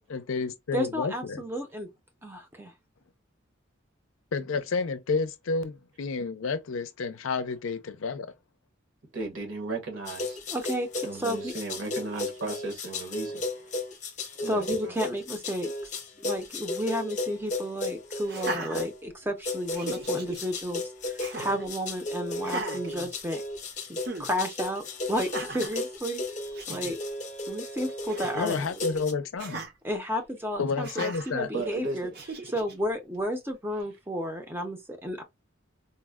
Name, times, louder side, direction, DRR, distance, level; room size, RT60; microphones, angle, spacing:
voice 1, 0.1-1.4 4.3-8.3 28.3-29.7 30.6-31.5, left 4 dB, 90° left, 0.5 m, -30 dB
voice 2, 0.7-1.9 2.2-2.7 10.5-11.5 14.4-15.7 16.2-23.4 23.9-26.2 26.7-27.0 27.5-28.7 29.8-32.1 32.5-35.2, equal, 10° right, 0.5 m, -32 dB
voice 3, 9.1-10.4 11.0-13.7 14.4-15.0 31.5-32.2, right 3 dB, 75° right, 1.2 m, -35 dB
sound 1, 10.1-19.0 19.4-29.1, left 2 dB, 35° left, 0.7 m, -35 dB
Laughter, 18.2-19.4 19.7-20.4 21.2-21.7 22.4-23.6 24.0-24.3 25.2-25.8 26.3-26.4 26.5-26.9 28.1-28.7 29.4-29.7 30.8-31.3 32.1-32.7, right 2 dB, 55° right, 0.6 m, -37 dB
4.0 x 2.1 x 2.2 m
head